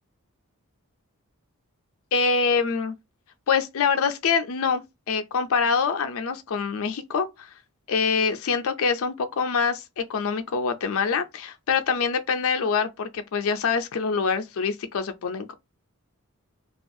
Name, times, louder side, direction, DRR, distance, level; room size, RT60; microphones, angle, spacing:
voice 1, 2.1-2.9 3.5-7.5 7.9-15.5, left 5 dB, 65° left, 0.4 m, -25 dB
2.4 x 2.3 x 2.6 m
head